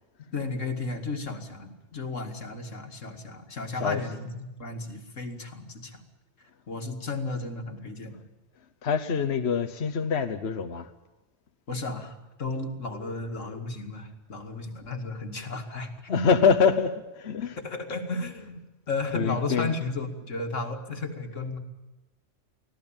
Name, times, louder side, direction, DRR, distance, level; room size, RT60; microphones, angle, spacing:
voice 1, 0.3-6.0 6.7-8.2 11.7-16.3 17.4-18.6 18.9-21.6, left 3 dB, 90° left, 5 dB, 2.6 m, -34 dB
voice 2, 3.8-4.3 8.8-10.9 12.9-13.2 16.1-17.6 19.1-19.7, left 6 dB, 60° left, 8 dB, 1.3 m, -25 dB
24.5 x 16.5 x 8.9 m, 1.0 s
omnidirectional pair, 1.3 m